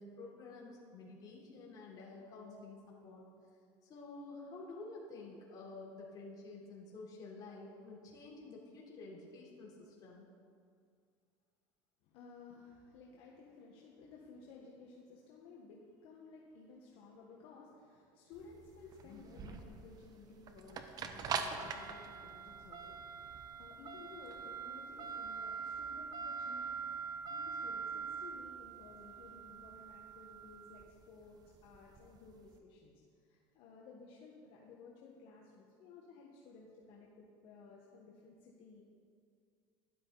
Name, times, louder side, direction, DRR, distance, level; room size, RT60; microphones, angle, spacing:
voice 1, 0.0-3.3 3.8-10.3, left 3 dB, 40° left, -4 dB, 3.7 m, -50 dB
voice 2, 12.0-26.9 27.3-32.9 33.2-38.8, left 4 dB, 65° left, -3 dB, 1.6 m, -56 dB
sound 1, 18.3-32.5, right 6 dB, 40° right, 1.0 m, -43 dB
12.5 x 11.5 x 4.1 m, 2.2 s
supercardioid pair, 120°, 10 cm